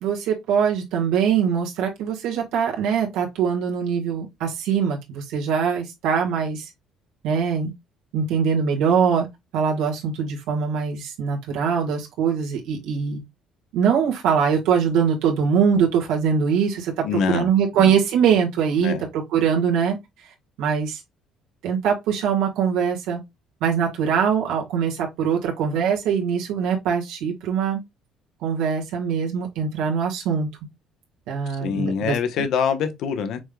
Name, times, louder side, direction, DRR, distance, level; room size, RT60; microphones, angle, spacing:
voice 1, 0.0-6.7 7.2-7.7 8.1-9.3 9.5-13.2 13.7-20.0 20.6-21.0 21.6-23.2 23.6-27.8 28.4-30.5 31.3-32.2, right 7 dB, 80° right, 1.8 m, -22 dB
voice 2, 17.0-17.5 17.7-17.9 18.8-19.0 31.5-33.4, left 6 dB, 60° left, 1.0 m, -25 dB
6.0 x 3.7 x 2.3 m
cardioid pair, 150°, 0 cm